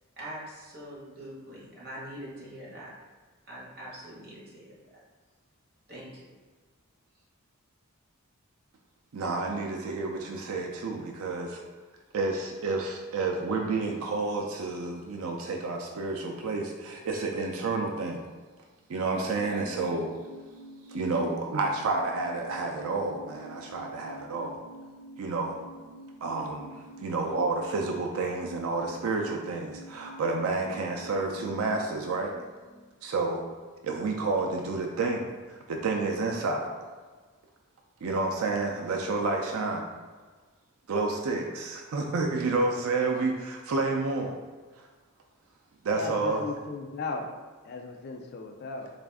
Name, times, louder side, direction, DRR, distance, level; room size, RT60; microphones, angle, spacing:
voice 1, 0.2-2.9 3.5-4.7 5.9-6.3, equal, 45° right, -7 dB, 1.3 m, -43 dB
voice 2, 9.1-11.6 12.1-18.2 18.9-20.1 20.9-24.6 25.2-25.6 26.2-32.3 33.0-33.4 33.8-35.2 35.7-36.7 38.0-39.8 40.9-44.3 45.8-46.5, right 3 dB, 75° right, 1 dB, 0.4 m, -30 dB
sound 1, 18.8-33.9 34.2-34.3, right 1 dB, 80° left, 0.8 m, -49 dB
voice 3, 45.9-47.3 47.6-48.9, left 3 dB, 45° left, 3 dB, 0.4 m, -36 dB
4.0 x 2.5 x 3.4 m, 1.4 s
head